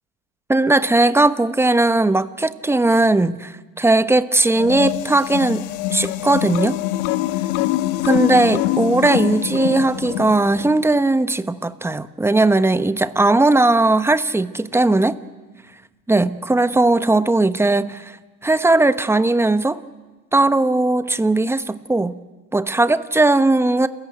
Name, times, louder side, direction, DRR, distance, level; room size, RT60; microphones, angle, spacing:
voice 1, 0.5-5.6 5.9-6.8 8.0-15.2 16.1-18.2 18.4-19.8 20.3-22.2 22.5-23.9, right 2 dB, 5° right, 13 dB, 1.0 m, -18 dB
sound 1, 4.5-10.9, left 15 dB, 65° left, 1.3 m, -24 dB
28.0 x 15.0 x 9.3 m, 1.3 s
hypercardioid pair, 90°, 43 cm